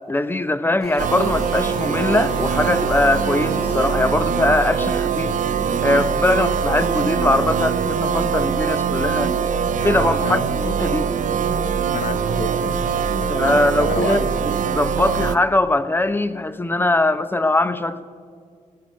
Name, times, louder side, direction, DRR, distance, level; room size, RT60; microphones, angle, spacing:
voice 1, 0.1-5.3 5.8-9.3 9.8-11.1 13.3-18.0, left 2 dB, 15° left, 13 dB, 0.7 m, -21 dB
sound 1, 0.8-6.0 6.2-6.3, left 1 dB, 45° left, 2.9 m, -38 dB
sound 2, 1.0-15.4, right 6 dB, 75° right, 0.6 m, -22 dB
voice 2, 11.9-14.2, left 6 dB, 80° left, 11 dB, 0.8 m, -30 dB
16.5 x 6.2 x 9.7 m, 2.1 s
cardioid pair, 65°, 13 cm